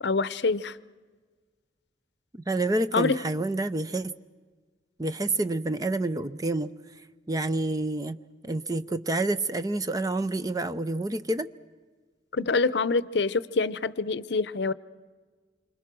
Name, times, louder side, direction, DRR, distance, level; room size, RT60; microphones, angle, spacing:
voice 1, 0.0-0.8 2.9-3.2 12.3-14.7, left 4 dB, 70° left, 17 dB, 0.7 m, -26 dB
voice 2, 2.3-4.1 5.0-6.7 7.3-8.2 8.4-11.5, right 2 dB, 20° right, 12 dB, 0.6 m, -28 dB
27.0 x 25.5 x 6.1 m, 1.4 s
head